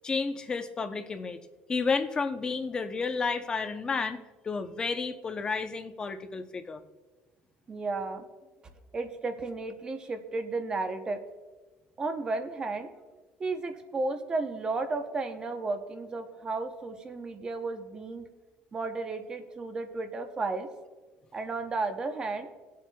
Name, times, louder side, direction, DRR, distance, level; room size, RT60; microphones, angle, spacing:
voice 1, 0.0-1.4 1.7-6.8, left 4 dB, 20° left, 8 dB, 0.6 m, -31 dB
voice 2, 7.7-8.3 8.9-11.2 12.0-12.9 13.4-18.3 18.7-20.7 21.3-22.5, right 3 dB, 25° right, 7 dB, 0.7 m, -33 dB
20.5 x 7.5 x 2.3 m, 1.3 s
cardioid pair, 155°, 4 cm